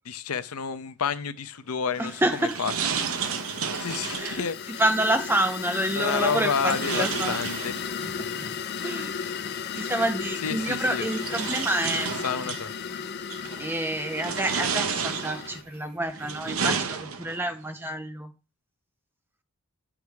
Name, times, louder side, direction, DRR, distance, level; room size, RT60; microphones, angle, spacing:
voice 1, 0.1-2.1 2.6-2.7 3.8-4.6 6.0-7.7 10.4-11.1 12.2-12.7, left 6 dB, 90° left, 0.7 m, -29 dB
sound 1, 1.9-4.5 6.5-8.1 9.5-9.6 10.6-12.7 13.3-13.7 14.1-15.6 16.1-17.5, right 6 dB, 75° right, 0.8 m, -32 dB
voice 2, 2.0-2.6 4.2-7.4 8.2-8.3 8.8-9.4 9.7-12.1 13.6-18.3, right 1 dB, 10° right, 0.7 m, -28 dB
sound 2, 2.3-15.6, left 7 dB, 45° left, 0.4 m, -35 dB
sound 3, 6.0-16.6, equal, 35° right, 2.1 m, -51 dB
9.3 x 3.7 x 4.7 m
head